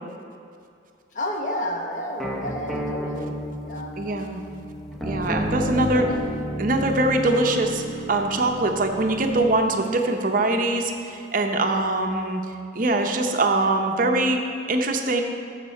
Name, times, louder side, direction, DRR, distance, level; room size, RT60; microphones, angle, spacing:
voice 1, 1.1-3.9 5.6-6.0, left 1 dB, 45° left, 1 dB, 1.1 m, -31 dB
sound 1, 2.2-9.6, equal, ahead, 0.7 m, -32 dB
voice 2, 4.0-4.4 5.0-6.1 6.6-12.4 12.7-14.4 14.7-15.2, right 2 dB, 45° right, 4 dB, 0.7 m, -23 dB
13.5 x 6.4 x 4.3 m, 2.4 s
head